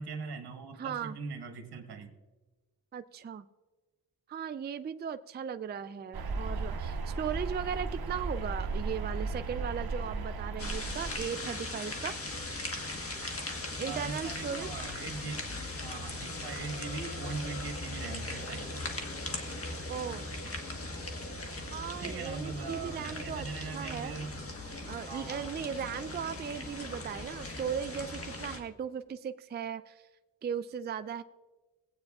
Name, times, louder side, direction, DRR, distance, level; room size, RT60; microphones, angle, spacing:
voice 1, 0.0-2.1 13.8-15.4 15.8-18.7 22.0-24.4 25.1-25.5, right 4 dB, 85° right, 4 dB, 1.3 m, -41 dB
voice 2, 0.8-1.2 2.9-3.5 4.3-12.2 13.8-14.7 19.9-20.4 21.7-24.1 24.9-30.0 30.4-31.2, right 7 dB, 30° right, 11 dB, 0.3 m, -37 dB
sound 1, 6.1-11.3, right 3 dB, 65° right, 0.9 m, -35 dB
sound 2, 10.6-28.6, left 2 dB, 35° left, 1.4 m, -39 dB
18.0 x 8.7 x 2.4 m, 1.2 s
cardioid pair, 65°, 38 cm